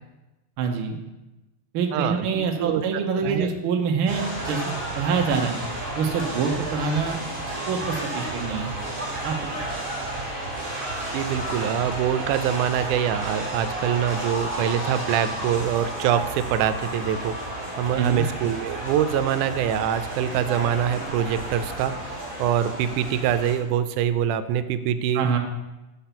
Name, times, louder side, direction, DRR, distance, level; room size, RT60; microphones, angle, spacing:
voice 1, 0.6-1.0 1.7-4.6 5.0-5.6 6.0-7.2 7.7-8.7 9.2-9.6 18.0-18.2 25.1-25.4, right 5 dB, 70° right, 3 dB, 1.3 m, -25 dB
voice 2, 1.9-2.3 2.6-2.8 3.2-3.5 11.1-21.9 22.4-25.4, right 9 dB, 90° right, 12 dB, 2.0 m, -24 dB
sound 1, 4.1-23.5, right 1 dB, 20° right, 2.2 m, -32 dB
6.8 x 6.0 x 5.8 m, 1.0 s
omnidirectional pair, 3.5 m